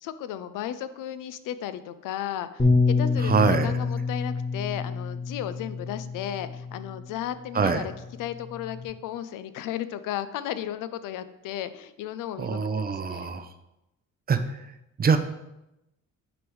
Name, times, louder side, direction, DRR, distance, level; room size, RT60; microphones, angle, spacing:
voice 1, 0.0-2.6 3.0-7.9 8.2-13.3, left 11 dB, 80° left, 12 dB, 0.5 m, -34 dB
Bass guitar, 2.6-7.1 7.9-8.8, left 4 dB, 20° left, 1.3 m, -27 dB
voice 2, 3.2-3.7 7.5-7.9 12.4-13.5 14.3-14.4 15.0-15.2, right 5 dB, 30° right, 9 dB, 0.5 m, -24 dB
9.5 x 3.5 x 3.1 m, 0.91 s
cardioid pair, 80°, 31 cm